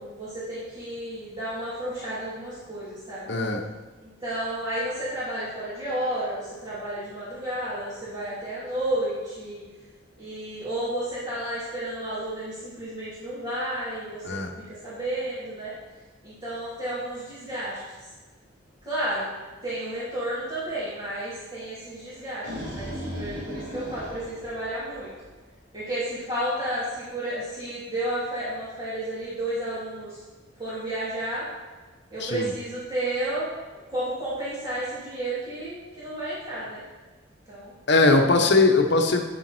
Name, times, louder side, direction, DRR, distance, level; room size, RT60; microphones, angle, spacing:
voice 1, 0.0-3.3 4.0-9.6 10.2-15.7 16.2-17.8 18.8-19.3 19.6-25.1 25.7-30.2 30.6-31.4 32.1-33.6 33.9-36.8 37.5-37.7, right 1 dB, 25° right, -12 dB, 3.3 m, -32 dB
voice 2, 3.3-3.6 14.2-14.5 32.2-32.5 37.9-39.2, left 3 dB, 60° left, 4 dB, 1.2 m, -20 dB
sound 1, 22.1-25.3, equal, 80° right, 3.3 m, -36 dB
9.9 x 7.7 x 4.5 m, 1.3 s
head